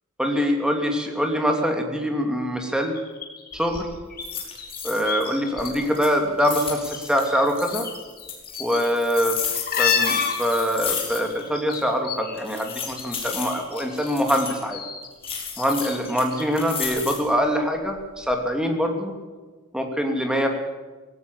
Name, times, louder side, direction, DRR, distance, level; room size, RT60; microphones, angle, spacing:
voice 1, 0.2-3.0 3.5-3.9 4.8-7.9 8.6-9.4 9.8-14.8 15.6-19.1 19.7-20.5, equal, 5° right, 3 dB, 2.9 m, -24 dB
sound 1, 3.0-5.7 6.0-7.0 7.2-13.2 13.5-16.5 16.8-16.9, left 7 dB, 45° left, 3.7 m, -30 dB
sound 2, 3.5-3.8 4.2-5.3 5.6-7.9 8.3-11.5 11.7-11.8 12.4-14.6 15.2-17.3 17.8-18.4, left 6 dB, 25° left, 5.0 m, -33 dB
18.0 x 17.5 x 8.4 m, 1.3 s
head